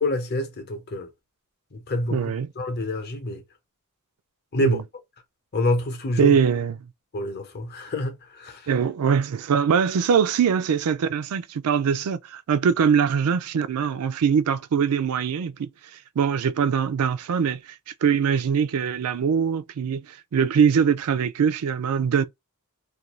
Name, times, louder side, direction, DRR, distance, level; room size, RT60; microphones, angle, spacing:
voice 1, 0.0-1.1 1.7-3.4 4.5-4.8 5.5-6.4 7.1-8.7, left 1 dB, 45° left, 0.7 m, -27 dB
voice 2, 2.1-2.5 4.6-4.8 6.2-6.8 8.7-15.7 16.2-17.7 18.0-22.2, right 7 dB, 75° right, 0.4 m, -22 dB
2.5 x 2.2 x 2.9 m
head